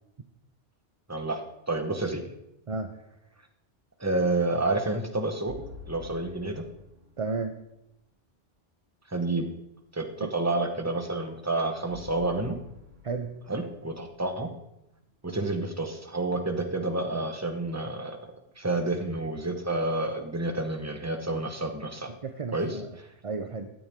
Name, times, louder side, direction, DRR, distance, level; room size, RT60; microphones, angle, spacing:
voice 1, 1.1-1.4 1.7-2.2 4.0-5.5 5.9-6.6 9.1-9.5 9.9-12.6 13.5-14.5 15.2-22.1 22.5-23.1, right 2 dB, 15° right, 5 dB, 1.0 m, -29 dB
sound 1, 5.5-7.7 11.9-15.1, left 3 dB, 85° right, 1.7 m, -48 dB
voice 2, 7.2-7.6 10.2-10.3 13.0-13.3 22.2-23.0 23.2-23.7, right 4 dB, 35° right, 7 dB, 0.6 m, -33 dB
15.5 x 9.7 x 3.6 m, 0.86 s
omnidirectional pair, 1.2 m